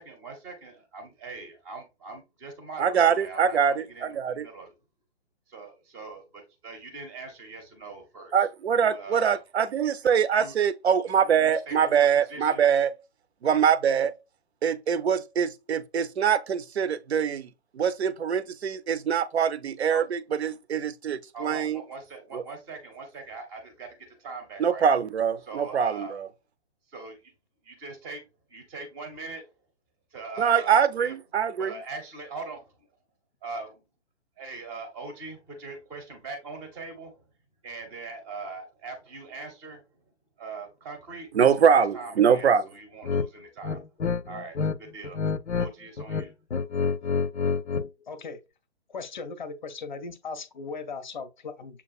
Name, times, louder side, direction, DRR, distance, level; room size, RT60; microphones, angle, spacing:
voice 1, 0.0-4.7 5.5-8.3 8.8-9.4 9.8-10.6 11.3-12.6 19.9-20.0 21.3-24.9 25.4-26.2 26.9-27.3 27.6-29.5 30.1-31.1 31.6-32.9 33.4-33.8 34.4-37.2 37.6-39.8 40.4-43.8 44.3-45.2 45.6-46.3, right 3 dB, 10° right, 0.6 m, -41 dB
voice 2, 2.8-4.5 8.3-12.9 13.4-14.1 14.6-17.5 17.7-21.8 22.3-22.4 24.6-26.3 30.4-31.7 41.3-42.7, right 7 dB, 70° right, 0.6 m, -24 dB
sound 1, 43.0-43.3 43.6-44.8 45.0-45.7 46.0-47.9, left 5 dB, 90° left, 0.5 m, -27 dB
voice 3, 48.1-48.4 48.9-51.8, left 4 dB, 45° left, 0.6 m, -38 dB
7.0 x 2.4 x 2.4 m
figure-of-eight pair, 130°, 34 cm